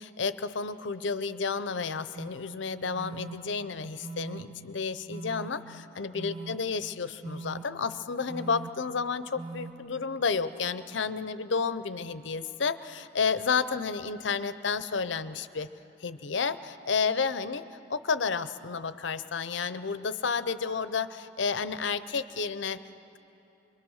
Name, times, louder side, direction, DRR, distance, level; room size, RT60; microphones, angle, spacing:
voice 1, 0.0-15.7 16.0-22.8, left 5 dB, 70° left, 13 dB, 0.7 m, -31 dB
sound 1, 2.1-2.3 3.0-3.4 4.0-4.4 5.1-5.5 6.2-6.6 7.2-7.6 8.3-8.7 9.4-9.7, right 3 dB, 40° right, 1.9 m, -40 dB
25.0 x 22.5 x 6.4 m, 2.9 s
head